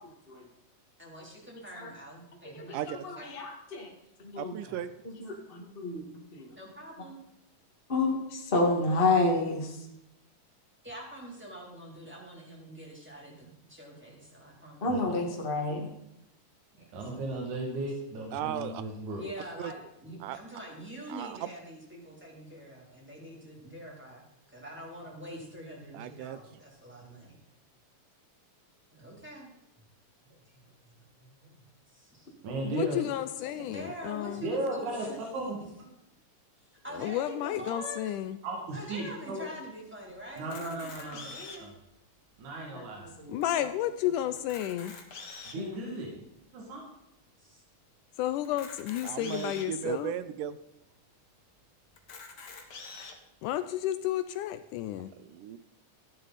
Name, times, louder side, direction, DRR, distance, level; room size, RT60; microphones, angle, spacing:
voice 1, 1.0-3.3 4.6-4.8 6.6-7.2 10.8-15.1 16.8-17.0 19.2-27.4 28.9-29.5 31.2-31.6 31.9-32.3 33.6-35.2 36.8-38.0 38.7-41.7 47.4-47.6, equal, 5° right, -2 dB, 2.8 m, -45 dB
voice 2, 2.5-3.9 4.2-4.6 5.0-6.0 6.3-6.5 7.9-9.9 14.8-15.9 42.7-43.5 45.5-45.9, left 2 dB, 25° left, 0 dB, 1.3 m, -30 dB
voice 3, 4.4-4.9 18.3-18.8 19.6-19.7 20.2-20.4 21.1-21.5 25.9-26.4 49.0-50.6 55.2-55.6, right 11 dB, 80° right, 13 dB, 2.1 m, -36 dB
voice 4, 16.9-19.2 32.4-33.0 34.4-35.1 35.3-35.6 38.4-39.4 40.4-41.3 41.6-41.7 42.4-43.1 45.5-46.1 46.5-46.8, right 2 dB, 65° right, -1 dB, 3.6 m, -35 dB
voice 5, 32.6-34.5 36.9-38.4 43.3-44.9 48.2-50.1 53.4-55.1, left 12 dB, 80° left, 12 dB, 2.0 m, -32 dB
Camera, 40.4-41.8 42.4-42.5 42.7-42.9 43.4-43.5 44.3-45.7 46.3-46.4 48.4-49.7 50.4-50.5 50.8-50.9 52.0-53.1, left 4 dB, 50° left, 1.3 m, -45 dB
14.0 x 10.5 x 4.1 m, 0.84 s
omnidirectional pair, 3.9 m